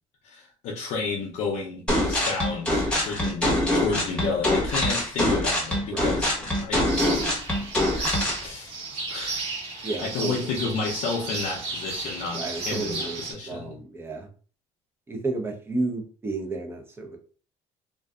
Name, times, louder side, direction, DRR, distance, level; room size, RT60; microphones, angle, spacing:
voice 1, 0.2-7.6 8.4-8.7 9.1-9.5 9.8-13.8, left 4 dB, 65° left, 0.5 m, -32 dB
sound 1, 1.9-8.4, left 1 dB, 10° left, 1.0 m, -24 dB
sound 2, 6.9-13.3, right 3 dB, 55° right, 1.0 m, -34 dB
voice 2, 9.8-10.5 12.3-14.3 15.1-17.2, right 3 dB, 20° right, 0.6 m, -32 dB
2.6 x 2.3 x 2.3 m
cardioid pair, 110°, 13 cm